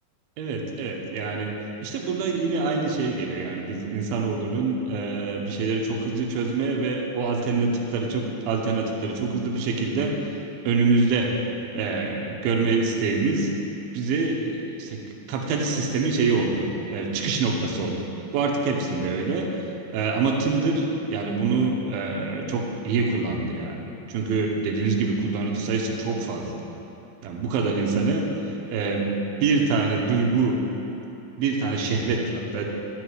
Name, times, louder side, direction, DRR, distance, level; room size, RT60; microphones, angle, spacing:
voice 1, 0.4-10.3 10.7-11.4 11.7-13.5 13.9-19.6 19.9-26.6 27.2-28.3 28.7-29.1 29.4-30.7 31.4-32.6, right 4 dB, 80° right, 0 dB, 2.7 m, -25 dB
11.5 x 6.1 x 4.7 m, 2.9 s
omnidirectional pair, 4.3 m